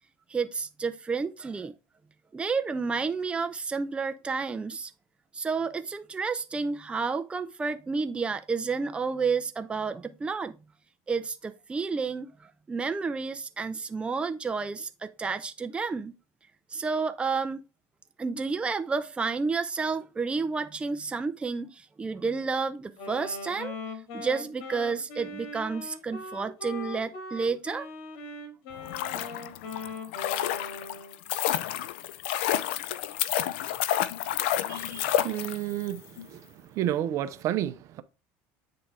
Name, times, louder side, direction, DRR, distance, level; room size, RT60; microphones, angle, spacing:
voice 1, 0.3-1.7 2.3-4.9 5.3-10.6 11.1-16.2 16.7-17.6 18.2-23.7 24.1-27.9, right 4 dB, 20° right, 0.6 m, -30 dB
Wind instrument woodwind instrument, 23.0-31.2, left 3 dB, 70° left, 2.0 m, -40 dB
sound 1, 28.7-35.9 36.2-36.3, left 12 dB, 85° left, 0.5 m, -30 dB
voice 2, 34.5-38.0, right 12 dB, 60° right, 0.7 m, -32 dB
8.5 x 3.9 x 3.3 m
supercardioid pair, 100°, 6 cm